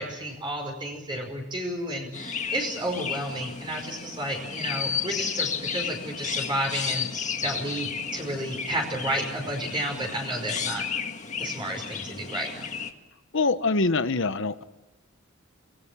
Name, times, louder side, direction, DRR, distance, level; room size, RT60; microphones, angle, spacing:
voice 1, 0.0-7.1 7.4-10.8 11.4-12.7, right 1 dB, 20° right, 1 dB, 5.2 m, -31 dB
Chirp tweet, 2.1-12.9, left 6 dB, 35° left, 1.7 m, -33 dB
voice 2, 13.3-14.6, left 3 dB, 60° left, 11 dB, 1.1 m, -24 dB
29.5 x 20.0 x 7.4 m, 1.0 s
head